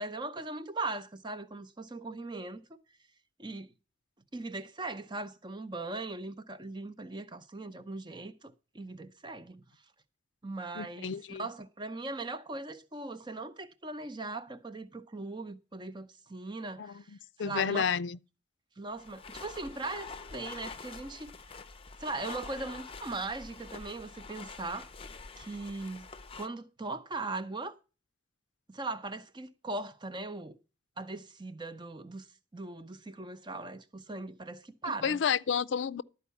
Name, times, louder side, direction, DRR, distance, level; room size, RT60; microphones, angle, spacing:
voice 1, 0.0-2.6 3.4-3.7 4.3-9.6 10.4-17.1 17.4-17.9 18.8-21.4 22.0-24.9 25.4-27.8 28.7-30.6 31.0-32.3 32.5-35.2, right 2 dB, 25° right, 0.7 m, -39 dB
voice 2, 10.8-11.4 16.8-18.2 35.0-36.0, left 7 dB, 85° left, 0.4 m, -31 dB
sound 1, 18.9-26.5, left 4 dB, 30° left, 0.6 m, -46 dB
12.0 x 4.7 x 8.2 m
head